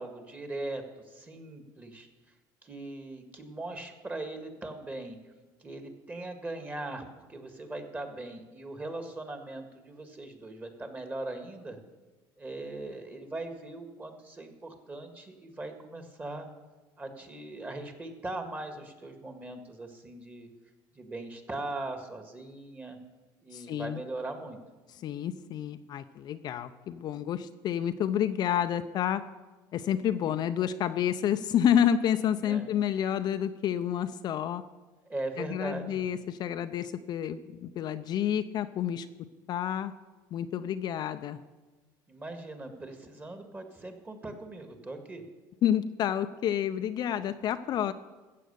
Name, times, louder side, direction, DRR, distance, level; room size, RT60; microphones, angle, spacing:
voice 1, 0.0-2.1 2.6-5.2 5.6-11.8 12.4-16.5 17.0-20.5 21.0-23.0 23.4-24.6 30.2-30.4 32.4-32.7 35.1-36.1 42.1-45.2, right 2 dB, 20° right, 6 dB, 1.8 m, -40 dB
voice 2, 23.5-24.0 24.9-29.2 29.7-34.6 35.4-39.1 39.5-39.9 40.3-41.4 45.6-47.9, left 9 dB, 50° left, 9 dB, 0.5 m, -29 dB
14.0 x 7.7 x 6.8 m, 1.2 s
cardioid pair, 120°, 9 cm